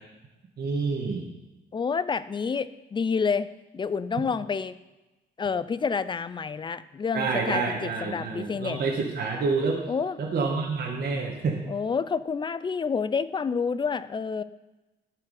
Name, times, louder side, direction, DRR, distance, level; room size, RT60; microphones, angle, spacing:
voice 1, 0.6-1.2 7.1-9.8 10.2-11.6, right 4 dB, 50° right, -1 dB, 1.4 m, -28 dB
voice 2, 1.7-3.5 3.7-4.7 5.4-8.8 9.9-10.2 11.7-14.4, left 5 dB, 25° left, 15 dB, 0.4 m, -28 dB
13.0 x 4.8 x 4.9 m, 1.1 s
cardioid pair, 90°, 20 cm